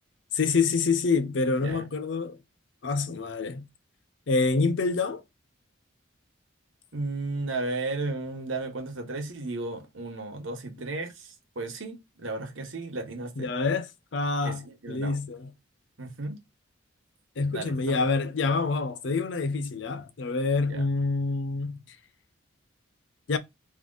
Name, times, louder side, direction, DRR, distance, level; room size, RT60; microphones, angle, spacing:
voice 1, 0.3-2.4 2.8-3.7 4.3-5.2 13.4-15.5 17.4-21.8 23.3-23.4, left 4 dB, 60° left, 0.6 m, -27 dB
voice 2, 6.9-13.5 14.4-15.2 16.0-16.4 17.5-18.1 20.6-20.9, right 2 dB, 75° right, 1.2 m, -34 dB
3.6 x 3.1 x 3.9 m
head